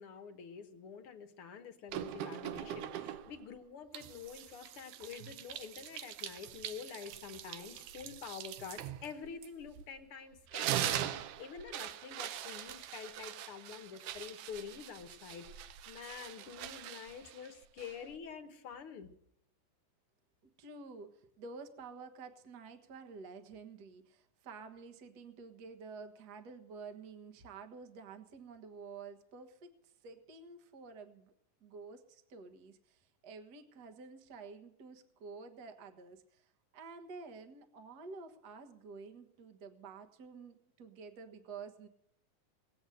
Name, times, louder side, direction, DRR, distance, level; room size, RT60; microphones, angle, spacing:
voice 1, 0.0-19.1, left 6 dB, 60° left, 8 dB, 1.6 m, -47 dB
sound 1, 1.9-3.4 3.9-10.0 10.3-18.2, right 12 dB, 80° right, 2.2 m, -42 dB
voice 2, 20.4-31.3 31.6-41.9, right 4 dB, 50° right, 7 dB, 1.3 m, -50 dB
20.0 x 8.1 x 9.1 m, 0.76 s
omnidirectional pair, 3.7 m